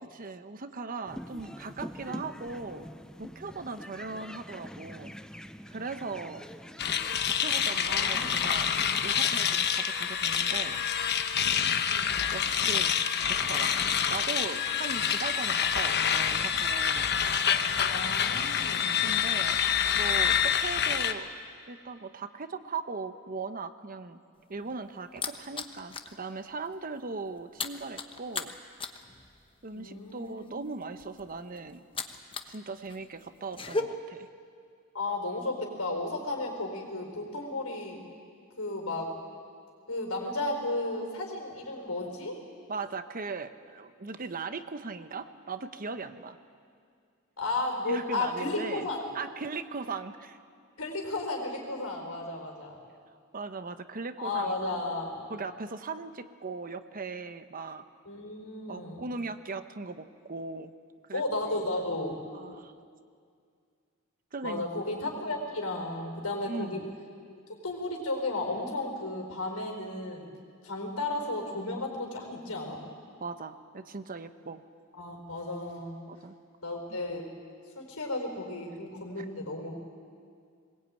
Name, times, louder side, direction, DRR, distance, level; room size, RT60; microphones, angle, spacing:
voice 1, 0.0-2.9 3.2-5.2 5.7-6.5 7.4-8.7 9.0-10.8 12.3-12.9 13.3-13.7 14.1-17.1 19.0-19.6 19.9-21.3 21.7-24.2 24.5-28.5 29.6-31.9 32.5-34.3 42.7-46.4 47.9-48.9 49.1-50.4 53.3-54.5 55.3-57.8 58.7-60.7 61.1-61.2 62.3-62.7 64.3-64.7 66.5-66.9 73.2-74.6 76.1-76.3 76.9-77.0 79.2-79.3, right 4 dB, 40° right, 10 dB, 1.0 m, -39 dB
sound 1, 1.1-7.2, equal, 5° left, 0.6 m, -44 dB
sound 2, 6.8-21.1, left 8 dB, 50° left, 1.1 m, -27 dB
voice 2, 7.9-8.3 8.6-8.7 11.9-12.2 17.9-19.0 29.7-30.5 34.9-38.0 38.6-39.1 39.9-42.4 47.4-49.0 50.8-52.8 54.2-55.3 58.0-59.1 61.1-62.2 64.4-66.8 67.6-70.2 70.6-72.8 75.0-76.0 76.6-77.3 77.7-79.7, left 2 dB, 90° left, 2 dB, 4.8 m, -34 dB
sound 3, 24.4-26.2 26.5-26.7 27.0-32.6 32.9-33.8, left 3 dB, 25° left, 1.0 m, -37 dB
22.0 x 21.0 x 9.0 m, 2.2 s
head